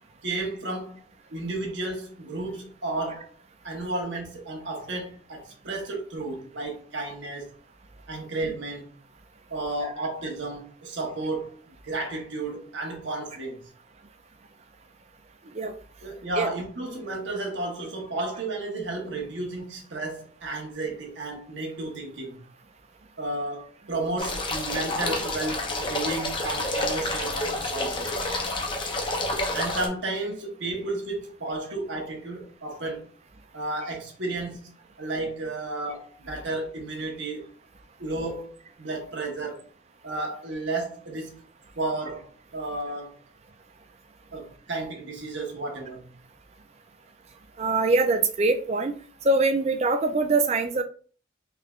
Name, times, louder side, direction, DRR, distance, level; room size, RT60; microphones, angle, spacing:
voice 1, 0.2-1.0 1.3-3.3 3.6-7.5 8.1-9.0 9.5-11.6 11.8-13.6 16.0-22.4 23.2-28.1 29.5-33.1 33.5-34.7 35.0-37.5 38.0-39.6 40.0-41.4 41.8-43.2 44.3-46.1, right 2 dB, 70° right, 1.1 m, -32 dB
sound 1, 24.2-29.9, left 2 dB, 25° left, 0.5 m, -29 dB
voice 2, 47.6-48.9 49.2-50.8, right 3 dB, 35° right, 0.4 m, -23 dB
3.6 x 3.2 x 2.4 m
head